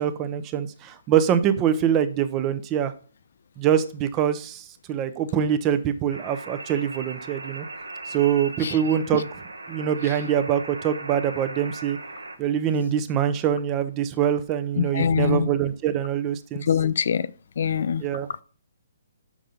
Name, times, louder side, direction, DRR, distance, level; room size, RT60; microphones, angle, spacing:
voice 1, 0.0-2.9 3.6-7.7 8.1-9.3 9.7-12.0 12.4-16.7 18.0-18.3, right 9 dB, 25° right, 0.6 m, -24 dB
sound 1, 6.1-12.4, right 2 dB, 85° right, 0.9 m, -38 dB
voice 2, 14.8-15.5 16.7-17.3 17.6-18.0, left 7 dB, 60° left, 0.3 m, -23 dB
6.0 x 5.6 x 3.9 m
figure-of-eight pair, 130°, 0 cm